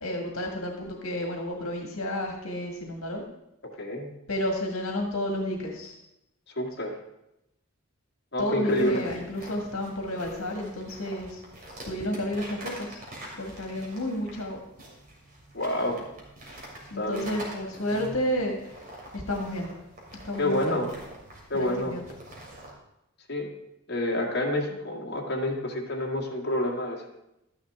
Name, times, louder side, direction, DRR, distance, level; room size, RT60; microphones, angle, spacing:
voice 1, 0.0-3.2 4.3-6.0 8.4-11.4 11.8-12.9 13.4-14.6 16.9-18.6 19.1-19.7 20.2-20.9 21.5-22.0, left 1 dB, 75° left, 2 dB, 1.7 m, -31 dB
voice 2, 3.8-4.1 6.6-6.9 8.3-9.1 15.5-16.1 16.9-17.4 18.0-18.2 20.4-20.9 21.5-21.9 23.3-23.5 23.9-27.1, left 1 dB, 50° left, -2 dB, 1.8 m, -28 dB
sound 1, 8.7-22.7, right 1 dB, 40° right, 3.0 m, -45 dB
12.5 x 9.9 x 3.5 m, 0.87 s
head